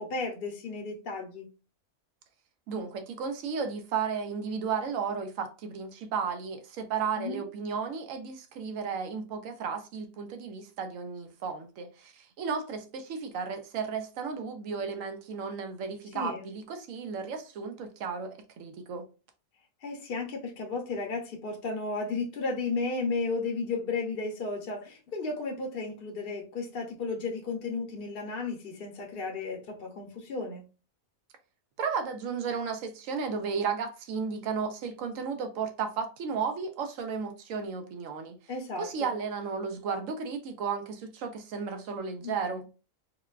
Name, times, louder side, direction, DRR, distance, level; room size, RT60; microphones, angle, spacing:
voice 1, 0.0-1.5 7.2-7.4 16.1-16.5 19.8-30.6 38.5-39.2 42.2-42.5, left 3 dB, 50° left, 0.8 m, -34 dB
voice 2, 2.7-19.1 31.8-38.4 38.8-42.7, right 5 dB, 70° right, 1.0 m, -34 dB
3.8 x 2.2 x 2.3 m
omnidirectional pair, 1.5 m